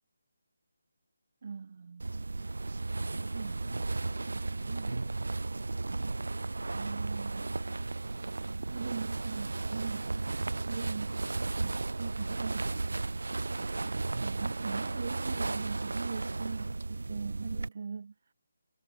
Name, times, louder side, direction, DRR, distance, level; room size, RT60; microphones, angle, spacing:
voice 1, 1.4-2.1 3.3-3.9 4.2-5.1 6.7-7.6 8.7-10.1 10.7-11.2 11.6-12.8 14.2-18.1, right 5 dB, 45° right, 2.1 m, -41 dB
sound 1, 2.0-17.7, right 3 dB, 65° right, 1.1 m, -34 dB
figure-of-eight pair, 155°, 0 cm